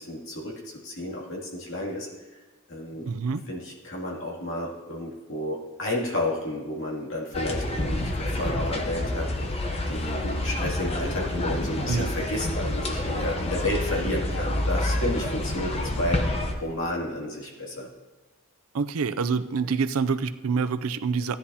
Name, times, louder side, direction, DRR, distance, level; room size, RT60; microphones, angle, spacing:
voice 1, 0.0-2.1 2.7-3.1 3.5-9.5 9.9-17.9, left 1 dB, 65° left, -4 dB, 2.5 m, -32 dB
voice 2, 3.1-3.4 11.9-12.1 18.7-21.4, right 5 dB, 75° right, 11 dB, 0.5 m, -26 dB
sound 1, 7.3-16.5, left 1 dB, 30° left, 0.8 m, -28 dB
15.5 x 10.0 x 2.8 m, 1.3 s
head